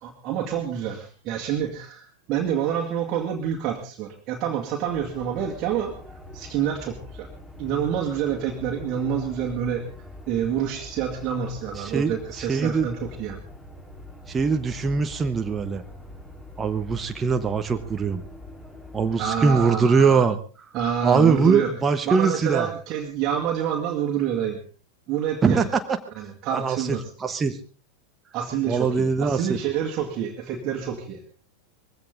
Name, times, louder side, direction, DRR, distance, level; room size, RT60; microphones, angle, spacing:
voice 1, 0.0-5.9 6.3-7.3 7.6-9.9 10.3-13.4 19.2-20.2 20.7-21.7 22.1-24.6 25.1-25.7 26.2-27.1 28.3-31.2, right 8 dB, 35° right, 0 dB, 2.2 m, -27 dB
sound 1, 4.9-19.7, left 2 dB, 15° left, 4.0 m, -43 dB
voice 2, 11.8-12.9 14.3-15.8 16.6-18.2 18.9-20.4 21.0-22.7 25.4-26.0 26.5-27.6 28.7-29.6, right 5 dB, 20° right, 7 dB, 1.2 m, -22 dB
20.5 x 15.5 x 3.9 m, 0.37 s
figure-of-eight pair, 90°, 0 cm